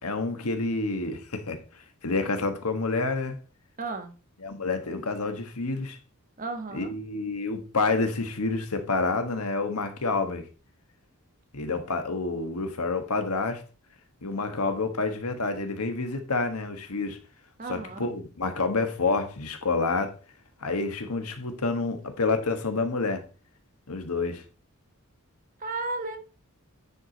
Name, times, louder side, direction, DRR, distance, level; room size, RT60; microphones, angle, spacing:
voice 1, 0.0-1.6 2.0-3.4 4.4-6.0 6.7-10.5 11.5-13.6 14.2-17.2 17.7-20.1 20.6-23.3 23.9-24.4, left 3 dB, 90° left, 1.4 m, -28 dB
voice 2, 3.8-4.1 6.4-6.9 17.6-18.1 25.6-26.2, right 3 dB, 40° right, 1.2 m, -34 dB
9.6 x 4.8 x 4.0 m
head